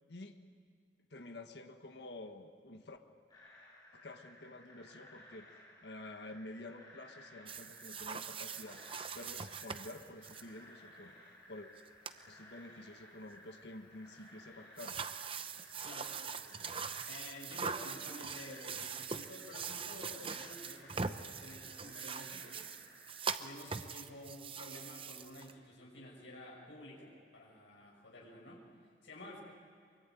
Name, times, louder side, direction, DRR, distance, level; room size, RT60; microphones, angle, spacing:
voice 1, 1.1-3.0 3.9-5.5 5.8-8.8 9.1-11.7 12.3-15.0, left 2 dB, 65° left, 5 dB, 1.5 m, -50 dB
sound 1, 3.3-23.2, left 1 dB, 20° left, 7.5 m, -58 dB
sound 2, 7.5-10.4 11.8-11.9 12.1-12.2 14.8-25.5, right 5 dB, 30° right, 0.8 m, -42 dB
voice 2, 15.8-16.1 17.1-22.6 23.4-28.6 29.0-29.4, left 1 dB, 85° left, -3 dB, 6.0 m, -51 dB
24.0 x 23.5 x 9.3 m, 2.2 s
head